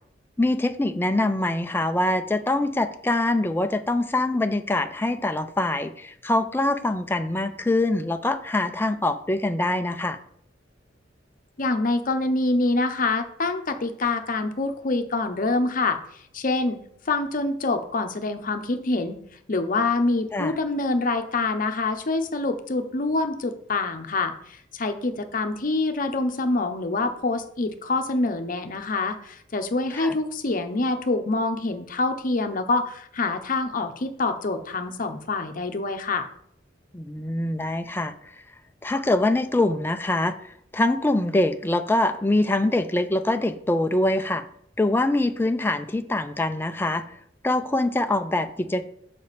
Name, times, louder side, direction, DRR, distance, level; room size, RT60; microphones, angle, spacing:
voice 1, 0.4-10.2 20.3-20.5 29.9-30.2 36.9-38.1 38.8-44.4 44.8-47.0 47.4-48.9, left 2 dB, 10° left, 7 dB, 0.4 m, -24 dB
voice 2, 11.6-16.8 17.1-19.2 19.5-36.3, left 3 dB, 50° left, 7 dB, 0.7 m, -26 dB
6.9 x 5.2 x 4.1 m, 0.68 s
head